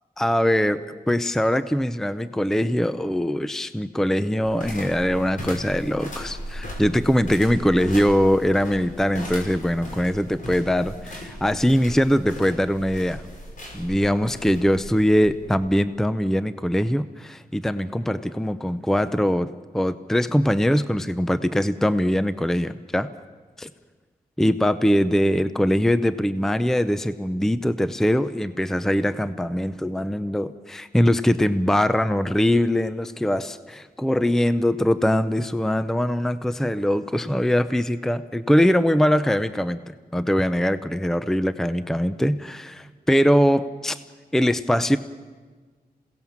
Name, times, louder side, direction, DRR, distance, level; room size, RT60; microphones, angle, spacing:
voice 1, 0.2-13.2 13.7-23.1 23.6-23.7 24.4-39.8 40.1-44.0 44.3-45.0, equal, 5° left, 12 dB, 0.6 m, -22 dB
sound 1, 4.4-15.7, equal, 55° left, 5.5 m, -37 dB
27.5 x 17.5 x 7.3 m, 1.4 s
wide cardioid pair, 105°, 16 cm